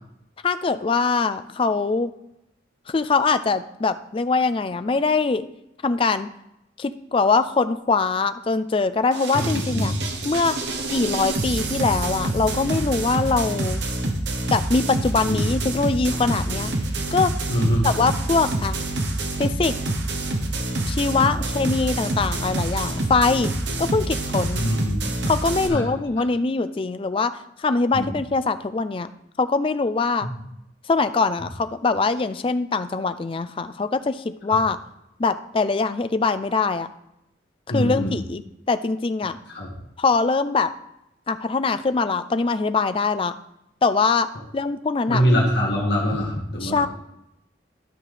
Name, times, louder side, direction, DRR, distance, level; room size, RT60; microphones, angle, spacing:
voice 1, 0.4-2.1 2.9-5.5 5.8-6.3 6.8-9.9 10.2-10.5 10.9-13.8 14.5-16.7 17.1-17.3 17.8-18.8 19.4-19.7 20.9-23.5 23.8-24.6 25.2-29.1 29.4-30.3 30.9-34.8 35.2-36.9 37.7-39.4 40.0-40.7 41.3-43.3 43.8-44.3 44.5-45.2 46.6-46.9, left 4 dB, 30° left, 11 dB, 0.3 m, -22 dB
sound 1, 9.1-25.7, right 2 dB, 65° right, 1.0 m, -27 dB
voice 2, 9.3-9.9 15.3-15.4 17.5-17.8 24.5-25.0 25.7-25.9 27.9-28.1 34.5-34.6 37.7-38.1 39.5-39.7 45.1-46.8, equal, 60° left, -4 dB, 1.6 m, -23 dB
12.5 x 5.7 x 3.3 m, 0.85 s
head